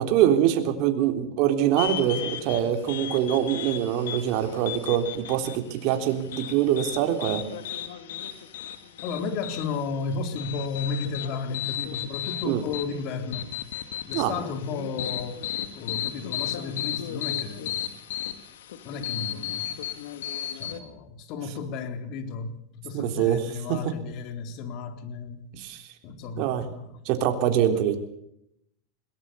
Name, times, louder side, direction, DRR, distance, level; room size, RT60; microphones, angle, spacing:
voice 1, 0.0-7.5 12.4-12.6 14.1-14.3 22.9-23.4 23.7-23.9 25.5-25.8 26.4-26.6 27.1-28.0, right 10 dB, 55° right, 6 dB, 3.5 m, -24 dB
sound 1, 1.8-20.8, left 11 dB, 80° left, 2.5 m, -35 dB
voice 2, 9.0-13.5 14.0-15.5 15.7-17.9 18.8-19.9 20.5-25.5 26.0-27.0 27.7-27.8, left 4 dB, 50° left, 8 dB, 3.7 m, -33 dB
21.5 x 18.5 x 7.0 m, 0.75 s
supercardioid pair, 130°, 0 cm